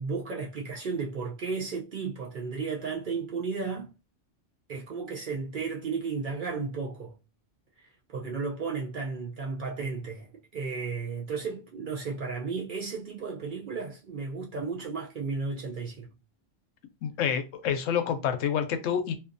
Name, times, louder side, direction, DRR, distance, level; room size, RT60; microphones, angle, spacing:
voice 1, 0.0-3.9 4.7-7.2 7.8-16.1, right 4 dB, 60° right, 0.5 m, -34 dB
voice 2, 17.0-19.1, left 8 dB, 90° left, 0.9 m, -28 dB
2.6 x 2.4 x 2.5 m
omnidirectional pair, 1.3 m